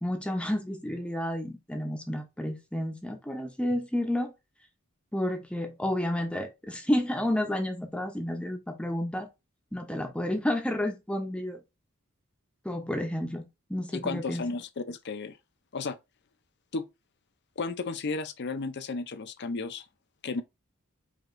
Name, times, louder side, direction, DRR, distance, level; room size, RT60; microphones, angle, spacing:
voice 1, 0.0-4.3 5.1-9.3 9.7-11.6 12.6-14.4, left 1 dB, 5° left, 0.6 m, -31 dB
voice 2, 13.9-15.4 15.7-16.0 16.7-16.8 17.6-19.8 20.2-20.4, left 3 dB, 50° left, 0.5 m, -33 dB
4.9 x 2.8 x 2.5 m
head